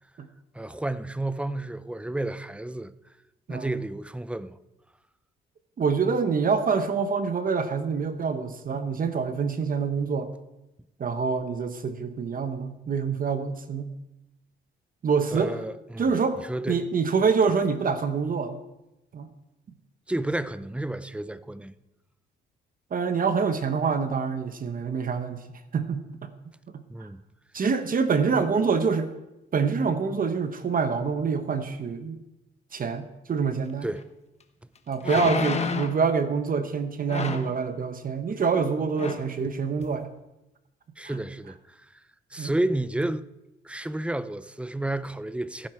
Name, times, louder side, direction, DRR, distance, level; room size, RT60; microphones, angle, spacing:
voice 1, 0.5-2.9 3.5-4.6 15.3-16.1 16.4-16.9 20.1-21.7 26.9-27.2 33.8-34.0 35.0-35.3 41.0-41.9 42.3-43.3 43.6-45.7, right 1 dB, 5° right, 0.5 m, -31 dB
voice 2, 3.5-3.8 5.8-10.3 11.0-13.9 15.0-15.6 16.0-16.4 16.7-18.6 19.1-19.3 22.9-26.3 26.7-27.1 27.5-29.1 29.5-32.2 32.7-33.9 34.9-40.1 41.0-41.2 42.4-42.5, right 5 dB, 45° right, 1.0 m, -26 dB
sound 1, 34.0-34.1 35.0-36.0 37.1-37.6 38.5-38.7 39.0-39.3 39.8-39.9, left 5 dB, 35° left, 1.2 m, -30 dB
15.5 x 9.5 x 4.4 m
cardioid pair, 90°, 20 cm